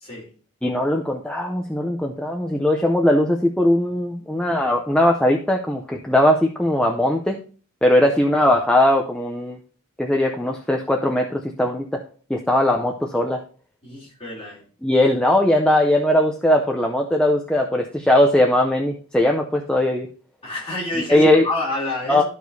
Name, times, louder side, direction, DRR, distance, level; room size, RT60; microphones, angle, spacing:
voice 1, 0.0-0.3 13.8-14.6 20.4-22.2, left 2 dB, 25° left, 2.6 m, -29 dB
voice 2, 0.6-7.4 7.8-9.6 10.0-12.0 12.3-13.4 14.8-20.1 21.1-21.5 22.1-22.2, left 1 dB, 5° left, 0.5 m, -19 dB
13.0 x 4.7 x 2.7 m
head